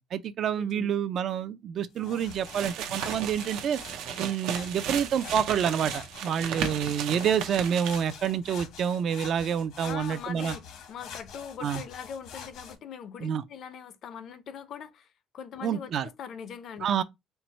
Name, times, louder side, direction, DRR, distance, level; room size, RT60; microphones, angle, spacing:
voice 1, 0.0-3.8 4.2-10.5 11.6-11.8 13.2-13.4 15.6-16.1 16.8-17.0, right 8 dB, 50° right, 0.4 m, -28 dB
voice 2, 0.6-0.9 9.8-15.1 15.3-16.9, left 8 dB, 50° left, 0.5 m, -41 dB
sound 1, 2.0-12.8, left 7 dB, 75° left, 1.1 m, -45 dB
sound 2, 2.3-8.3, right 8 dB, 85° right, 0.6 m, -35 dB
4.5 x 2.0 x 4.0 m
cardioid pair, 150°, 0 cm